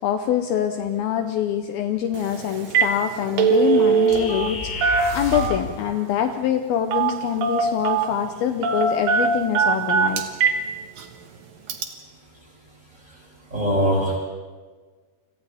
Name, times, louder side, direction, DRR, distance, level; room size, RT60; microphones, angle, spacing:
voice 1, 0.0-10.3, left 9 dB, 75° left, 6 dB, 2.5 m, -24 dB
Telephone, 2.1-2.3 2.6-2.9 3.2-4.5 4.8-5.8 6.9-7.2 7.4-8.1 8.6-10.6 11.0-11.1 11.7-11.8, right 6 dB, 65° right, 2.9 m, -20 dB
sound 1, 4.1-5.7, left 4 dB, 55° left, 5.0 m, -31 dB
voice 2, 13.5-14.2, equal, 15° right, -4 dB, 7.3 m, -21 dB
30.0 x 26.5 x 3.5 m, 1.4 s
omnidirectional pair, 4.7 m